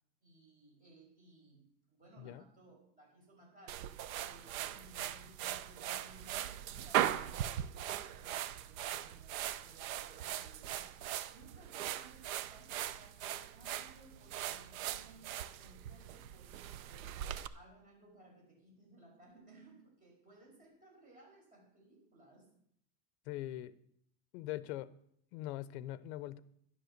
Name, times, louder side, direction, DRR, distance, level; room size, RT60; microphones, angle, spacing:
voice 1, 0.2-10.9 11.3-17.2 17.5-22.5, right 2 dB, 15° right, -2 dB, 5.5 m, -61 dB
sound 1, 3.7-17.5, right 11 dB, 60° right, 0.8 m, -40 dB
voice 2, 23.3-23.7 24.3-24.9 25.3-26.4, left 14 dB, 45° left, 17 dB, 0.8 m, -42 dB
11.0 x 11.0 x 6.6 m, 0.70 s
supercardioid pair, 175°, 46 cm